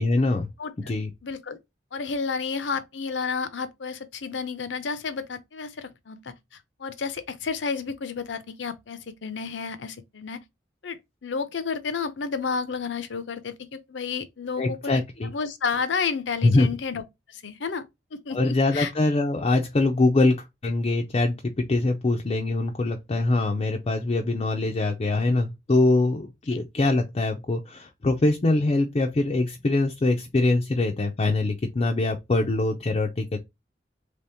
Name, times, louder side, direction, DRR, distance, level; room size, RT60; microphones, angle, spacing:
voice 1, 0.0-0.5 0.8-1.1 14.6-15.3 16.4-16.7 18.3-33.4, left 2 dB, 35° left, 0.5 m, -23 dB
voice 2, 1.2-1.6 1.9-6.3 6.8-10.4 10.8-17.0 17.3-17.8 18.1-18.9, left 5 dB, 80° left, 0.6 m, -31 dB
3.5 x 3.4 x 2.7 m
head